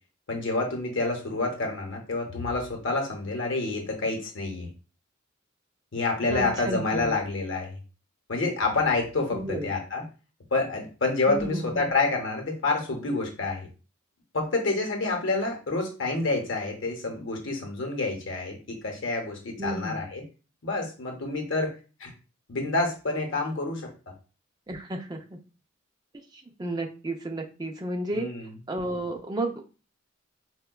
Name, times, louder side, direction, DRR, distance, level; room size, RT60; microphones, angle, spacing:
voice 1, 0.3-4.7 5.9-7.8 8.3-10.0 10.5-13.7 14.3-20.2 20.6-21.7 22.0-22.1 22.5-23.9 28.1-28.5, left 3 dB, 65° left, 2 dB, 0.8 m, -28 dB
voice 2, 6.3-7.2 9.3-9.7 11.3-11.9 19.6-20.0 24.7-25.4 26.3-28.3 28.7-29.6, right 1 dB, 20° right, 3 dB, 0.4 m, -32 dB
4.6 x 2.2 x 2.2 m, 0.34 s
head